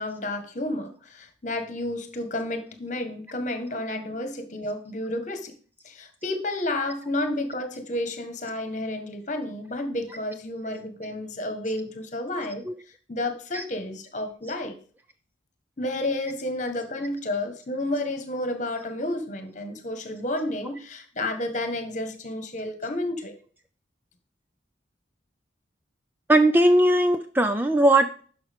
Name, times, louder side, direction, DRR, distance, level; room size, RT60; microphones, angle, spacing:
voice 1, 0.0-5.5 5.8-12.6 13.1-14.8 15.8-23.3, left 1 dB, 40° left, 7 dB, 1.5 m, -31 dB
voice 2, 26.3-28.2, right 1 dB, 10° right, 7 dB, 0.4 m, -19 dB
11.0 x 5.9 x 3.6 m, 0.43 s
head